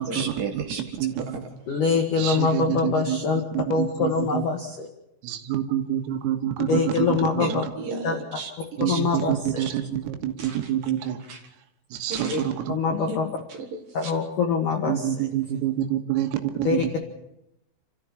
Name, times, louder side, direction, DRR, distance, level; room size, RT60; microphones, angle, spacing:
voice 1, 0.1-0.8 1.2-1.3 7.4-8.5 8.9-9.0 10.4-10.6 11.3-11.4 12.1-12.4 13.0-13.2 13.5-14.1, right 4 dB, 60° right, 4 dB, 2.6 m, -33 dB
voice 2, 1.0-1.4 2.2-3.2 3.5-4.5 5.2-7.7 8.8-11.2 11.9-12.7 14.9-16.9, right 11 dB, 85° right, 6 dB, 4.1 m, -27 dB
voice 3, 1.7-3.4 3.7-4.9 6.7-7.7 8.0-8.1 8.8-9.6 12.3-12.4 12.7-13.3 13.9-15.3 16.6-17.0, left 5 dB, 65° left, 2 dB, 2.0 m, -24 dB
29.0 x 14.0 x 7.3 m, 0.85 s
omnidirectional pair, 6.0 m